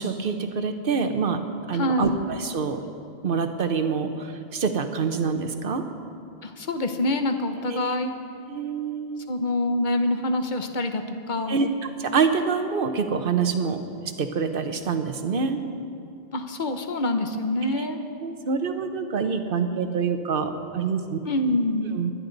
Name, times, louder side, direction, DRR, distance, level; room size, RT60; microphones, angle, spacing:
voice 1, 0.0-1.4 1.7-2.8 3.2-5.8 8.5-9.2 11.5-11.7 12.0-13.8 14.2-15.6 17.7-17.9 18.2-21.2 21.9-22.1, right 5 dB, 55° right, 7 dB, 1.0 m, -26 dB
voice 2, 1.7-2.2 6.4-8.2 9.3-11.6 16.3-18.0 21.2-21.9, left 1 dB, 45° left, 6 dB, 1.0 m, -26 dB
22.5 x 10.5 x 4.0 m, 2.5 s
omnidirectional pair, 1.1 m